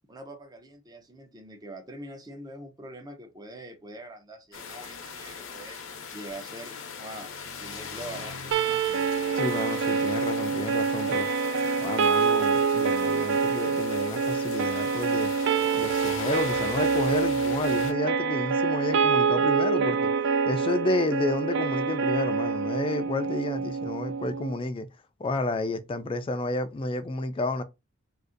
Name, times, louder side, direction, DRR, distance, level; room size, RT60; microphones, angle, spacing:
voice 1, 0.1-5.8 6.1-9.1, right 1 dB, 20° right, 0.6 m, -44 dB
sound 1, 4.5-17.9, left 5 dB, 85° left, 0.7 m, -40 dB
sound 2, 8.5-24.5, right 5 dB, 65° right, 0.4 m, -26 dB
voice 2, 9.4-11.3 11.8-15.3 15.7-20.1 20.5-24.9 25.2-27.6, left 2 dB, 25° left, 0.4 m, -31 dB
2.5 x 2.5 x 3.8 m
head